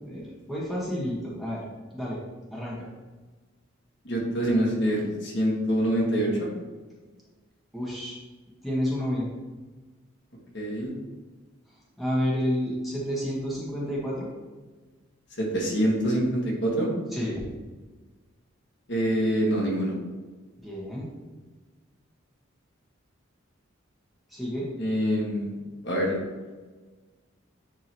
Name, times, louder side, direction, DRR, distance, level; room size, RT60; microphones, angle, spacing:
voice 1, 0.0-1.6 1.9-2.2 2.5-2.9 7.7-8.2 8.6-9.3 12.0-14.3 17.1-17.5 20.6-21.1 24.3-24.7, equal, ahead, -7 dB, 1.5 m, -30 dB
voice 2, 4.0-6.5 10.5-10.9 15.4-16.9 18.9-19.9 24.8-25.5 25.8-26.2, equal, 55° left, -3 dB, 1.7 m, -25 dB
9.8 x 3.9 x 3.0 m, 1.3 s
head